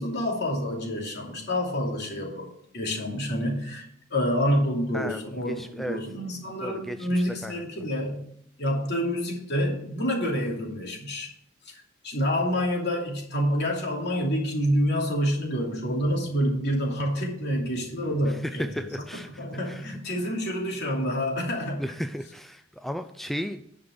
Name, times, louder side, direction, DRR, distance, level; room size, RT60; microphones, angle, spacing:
voice 1, 0.0-2.5 2.7-8.2 8.6-11.3 11.7-18.8 19.4-21.9, equal, 55° left, -1 dB, 2.8 m, -28 dB
voice 2, 4.9-6.0 6.6-7.6 18.3-19.9 21.8-23.7, equal, ahead, 7 dB, 0.4 m, -35 dB
10.5 x 5.3 x 6.8 m, 0.71 s
head